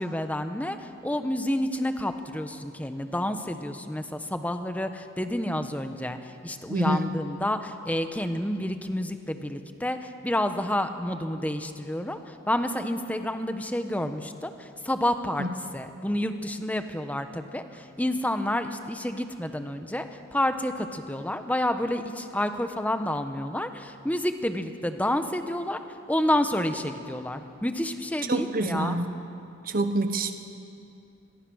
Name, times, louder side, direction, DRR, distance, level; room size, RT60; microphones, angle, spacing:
voice 1, 0.0-15.5 15.7-25.8 26.1-29.0, left 1 dB, 10° left, 8 dB, 1.1 m, -29 dB
voice 2, 6.7-7.1 15.4-15.5 28.3-29.1 29.6-30.4, right 1 dB, 45° right, 8 dB, 1.1 m, -27 dB
26.5 x 22.5 x 6.4 m, 2.6 s
head